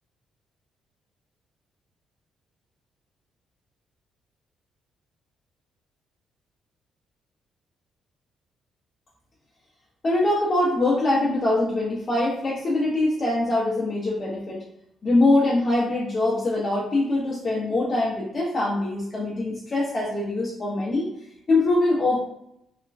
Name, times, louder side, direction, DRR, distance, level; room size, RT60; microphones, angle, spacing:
voice 1, 10.0-14.6 15.0-21.1 21.5-22.2, left 2 dB, 40° left, -4 dB, 0.6 m, -23 dB
3.0 x 2.2 x 2.4 m, 0.79 s
cardioid pair, 90°, 0 cm